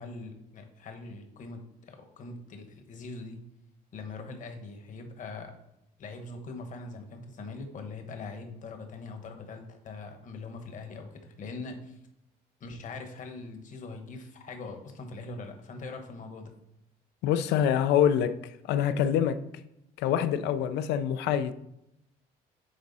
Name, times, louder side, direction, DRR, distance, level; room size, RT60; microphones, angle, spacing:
voice 1, 0.0-3.4 3.9-5.5 6.0-12.0 12.6-16.5, left 3 dB, 50° left, 1.3 m, -42 dB
voice 2, 17.2-19.4 20.0-21.5, left 9 dB, 85° left, 0.5 m, -25 dB
8.9 x 3.6 x 4.1 m
cardioid pair, 110°, 17 cm